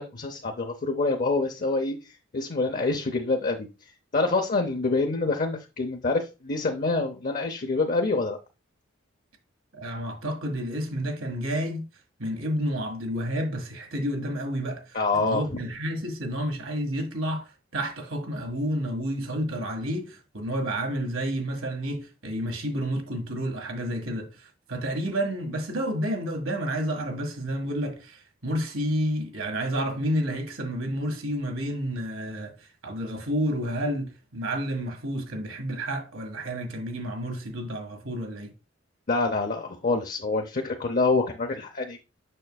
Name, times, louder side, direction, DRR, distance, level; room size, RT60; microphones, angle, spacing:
voice 1, 0.0-3.7 4.1-8.4 14.9-15.4 39.1-42.0, left 3 dB, 40° left, 0.7 m, -26 dB
voice 2, 9.7-11.8 12.2-38.5, equal, 70° right, 1.7 m, -30 dB
6.5 x 6.4 x 2.3 m
head